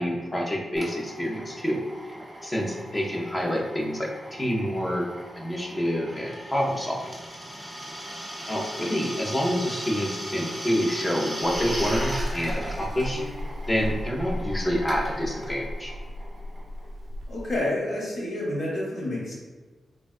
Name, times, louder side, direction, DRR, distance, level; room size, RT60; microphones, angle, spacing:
voice 1, 0.0-1.8 2.4-5.1 5.4-7.1 8.5-13.2 13.7-15.9, equal, 15° left, -1 dB, 0.5 m, -27 dB
Drill, 0.8-17.1, equal, 10° right, 0.8 m, -38 dB
Buzz, 11.4-17.6, left 1 dB, 60° right, 0.3 m, -34 dB
voice 2, 17.3-19.3, left 1 dB, 70° left, -5 dB, 0.9 m, -29 dB
3.4 x 2.2 x 2.3 m, 1.3 s
wide cardioid pair, 130°, 0 cm